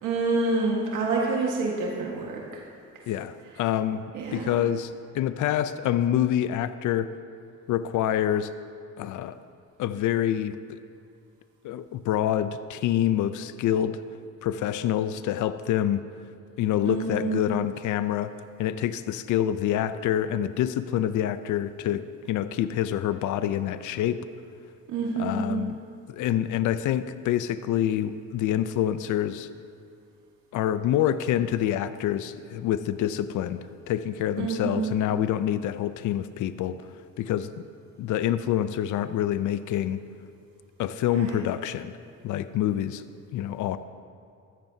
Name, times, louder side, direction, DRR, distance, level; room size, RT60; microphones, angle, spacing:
voice 1, 0.0-2.4 4.1-4.6 16.9-17.5 24.9-25.6 34.4-35.0 41.1-41.4, right 3 dB, 85° right, -2 dB, 1.6 m, -27 dB
voice 2, 3.1-4.0 4.3-7.1 7.7-8.5 9.0-9.4 9.8-10.8 11.6-14.0 14.4-16.0 16.6-18.3 18.6-24.2 25.2-25.7 26.1-29.5 30.5-36.8 37.2-37.5 38.0-40.0 40.8-41.9 42.2-43.0 43.3-43.8, left 11 dB, 80° left, 13 dB, 0.5 m, -26 dB
15.0 x 13.5 x 2.8 m, 2.4 s
cardioid pair, 90°, 30 cm